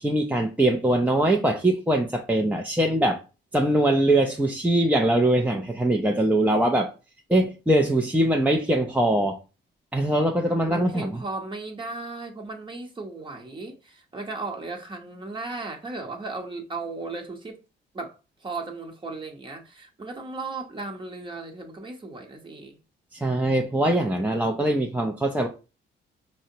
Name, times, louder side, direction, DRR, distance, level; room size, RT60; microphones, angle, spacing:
voice 1, 0.0-3.2 3.5-6.9 7.3-9.4 9.9-11.1 23.1-25.5, right 1 dB, 10° right, 0.5 m, -22 dB
voice 2, 10.7-17.6 17.9-22.8, right 3 dB, 25° right, 1.0 m, -36 dB
4.9 x 2.1 x 2.7 m
cardioid pair, 90°, 20 cm